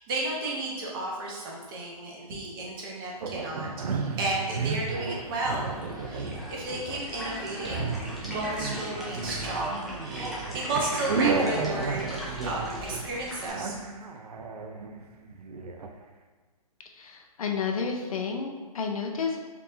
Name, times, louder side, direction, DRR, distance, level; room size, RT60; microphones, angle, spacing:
voice 1, 0.0-3.7 3.9-5.8 6.1-7.9 8.3-13.7, right 2 dB, 35° right, -3 dB, 1.0 m, -33 dB
sound 1, 3.2-15.9, right 4 dB, 80° right, 0.5 m, -33 dB
sound 2, 5.6-13.5, equal, ahead, 0.3 m, -39 dB
voice 2, 16.9-19.4, left 5 dB, 65° left, 2 dB, 0.5 m, -31 dB
4.5 x 2.7 x 2.7 m, 1.4 s
hypercardioid pair, 140°, 20 cm